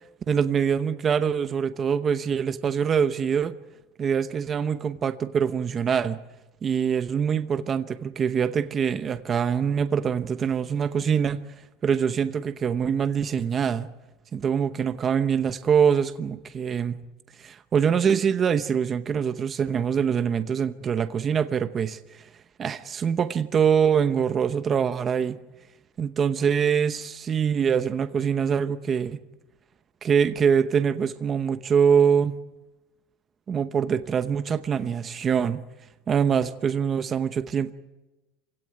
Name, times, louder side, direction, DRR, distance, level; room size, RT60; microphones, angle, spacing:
voice 1, 0.3-3.5 4.0-6.2 6.6-11.4 11.8-13.9 14.3-17.0 17.4-22.0 22.6-25.4 26.0-29.2 30.0-32.4 33.5-35.6 36.1-37.7, right 7 dB, 25° right, 0.9 m, -24 dB
27.0 x 17.0 x 9.3 m
supercardioid pair, 155°, 0 cm